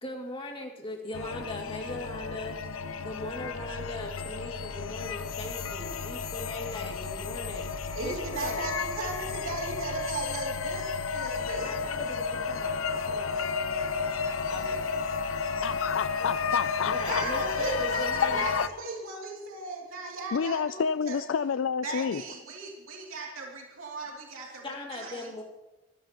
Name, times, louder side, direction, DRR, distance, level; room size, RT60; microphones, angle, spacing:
voice 1, 0.0-2.6 3.0-8.7 11.6-13.3 14.5-14.6 16.2-16.3 16.8-18.5 24.6-25.4, left 1 dB, 25° left, 0 dB, 2.4 m, -39 dB
sound 1, 1.1-18.7, left 5 dB, 85° left, 0.8 m, -32 dB
voice 2, 7.9-11.7 17.0-21.2 21.8-24.6 24.9-25.3, right 3 dB, 85° right, -2 dB, 2.8 m, -37 dB
voice 3, 15.6-17.2 18.2-18.6 20.3-22.2, left 6 dB, 65° left, 13 dB, 0.4 m, -29 dB
24.5 x 15.5 x 3.0 m, 1.1 s
head